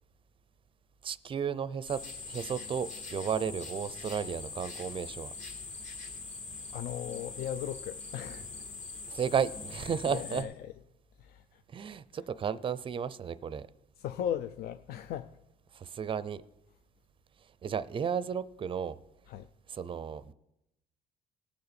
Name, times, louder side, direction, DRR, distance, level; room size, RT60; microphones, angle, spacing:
voice 1, 1.0-2.0 2.3-5.3 9.1-10.5 11.7-13.7 15.7-16.4 17.6-19.0 19.7-20.3, right 7 dB, 30° right, 0.5 m, -33 dB
sound 1, 1.9-10.4, left 3 dB, 45° left, 2.4 m, -43 dB
voice 2, 6.7-8.7 10.1-10.7 11.2-11.6 14.0-15.4 19.3-19.5, left 10 dB, 65° left, 0.4 m, -37 dB
18.5 x 6.8 x 4.2 m
cardioid pair, 110°, 17 cm